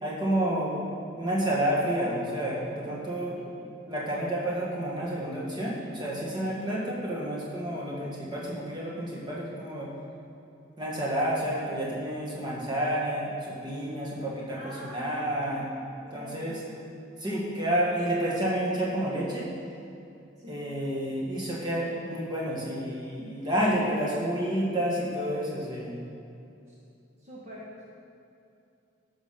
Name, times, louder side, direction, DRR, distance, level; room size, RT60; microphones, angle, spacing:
voice 1, 0.0-3.4 3.9-9.9 10.8-15.7 16.1-16.6 17.2-19.5 20.5-25.9, right 1 dB, 20° right, -5 dB, 1.8 m, -30 dB
voice 2, 14.5-15.7 16.0-16.5 20.4-20.7 23.5-23.9 26.7-26.8 27.2-27.8, left 1 dB, 40° right, -6 dB, 1.4 m, -44 dB
12.5 x 6.4 x 5.2 m, 2.6 s
head